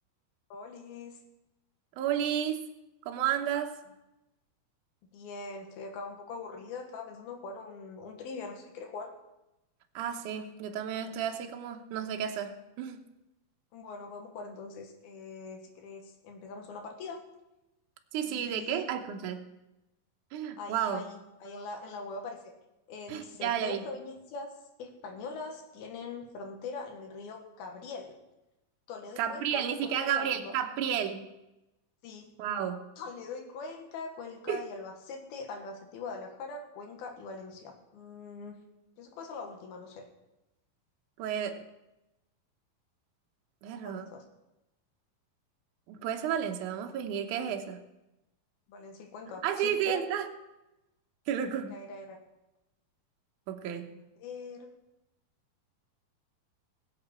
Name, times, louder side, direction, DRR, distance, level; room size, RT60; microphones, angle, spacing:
voice 1, 0.5-1.2 5.1-9.1 13.7-17.2 18.2-18.9 20.6-22.5 22.9-24.5 24.8-28.1 28.9-30.5 32.0-32.3 33.0-38.6 39.0-40.1 43.7-44.2 48.7-50.0 51.7-52.2 53.9-54.7, left 4 dB, 75° left, 3 dB, 3.3 m, -42 dB
voice 2, 2.0-2.6 3.1-3.8 10.0-13.0 18.1-19.4 20.3-21.0 23.1-23.8 29.2-31.3 32.4-32.9 34.5-34.6 41.2-41.7 43.6-44.1 45.9-47.8 49.4-50.3 51.3-51.8 53.5-53.9, right 9 dB, 70° right, 4 dB, 2.1 m, -32 dB
21.0 x 7.9 x 4.4 m, 0.95 s
omnidirectional pair, 4.5 m